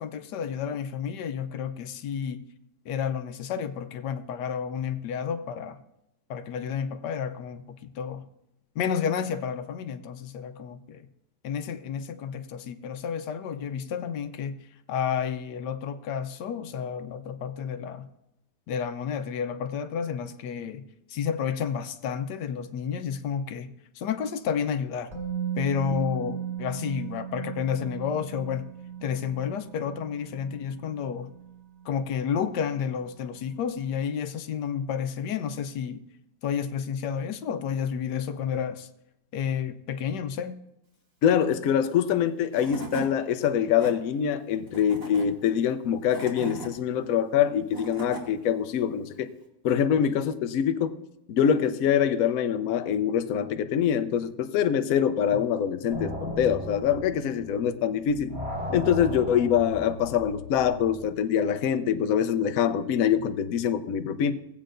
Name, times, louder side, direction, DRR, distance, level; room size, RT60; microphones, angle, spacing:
voice 1, 0.0-2.4 2.8-5.8 6.3-8.2 8.7-11.1 11.4-14.6 14.9-18.1 18.7-20.8 21.1-23.7 23.9-25.1 25.6-28.7 29.0-31.3 31.8-36.0 36.4-38.9 39.3-40.6, left 7 dB, 85° left, 1.3 m, -31 dB
Musical instrument, 25.1-33.0 33.3-33.5, right 9 dB, 20° right, 2.3 m, -37 dB
voice 2, 41.2-49.3 49.6-51.0 51.3-58.3 58.7-64.3, left 8 dB, 65° left, 1.0 m, -24 dB
Tools / Wood, 42.2-42.3 42.5-43.1 43.6-43.9 44.7-45.3 45.9-46.7 47.4-48.2, right 3 dB, 50° right, 2.7 m, -38 dB
sound 1, 55.9-57.8 58.0-61.0, equal, 75° right, 5.4 m, -36 dB
17.0 x 8.4 x 2.5 m
omnidirectional pair, 1.8 m